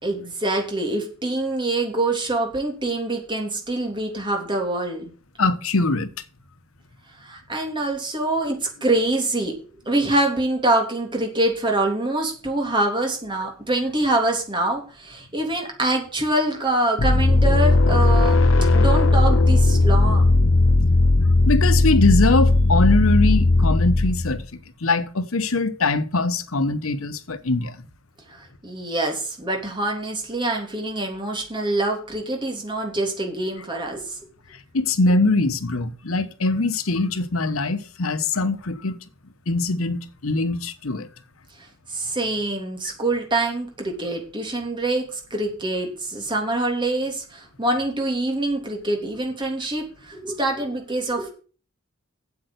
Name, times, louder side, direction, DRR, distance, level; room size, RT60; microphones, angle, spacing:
voice 1, 0.0-5.1 7.2-9.5 9.8-18.5 18.7-20.3 28.3-34.2 41.6-51.3, right 2 dB, 20° right, 3.1 m, -25 dB
voice 2, 5.4-6.1 18.7-18.8 21.5-24.5 24.8-27.8 34.7-39.0 39.5-41.1, left 3 dB, 90° left, 1.1 m, -22 dB
sound 1, 17.0-24.4, left 2 dB, 70° left, 0.7 m, -17 dB
8.6 x 7.9 x 8.0 m
head